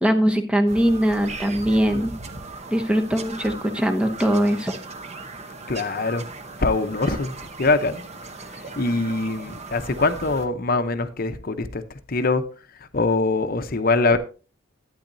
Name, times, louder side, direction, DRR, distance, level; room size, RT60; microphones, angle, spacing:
voice 1, 0.0-2.1 2.7-4.8, equal, 5° right, 0.9 m, -21 dB
Bird vocalization bird call bird song, 0.7-10.5, right 3 dB, 30° right, 0.9 m, -38 dB
voice 2, 5.7-6.3 6.6-8.0 8.5-12.4 12.8-14.2, left 3 dB, 45° left, 0.8 m, -23 dB
12.0 x 9.2 x 2.7 m
head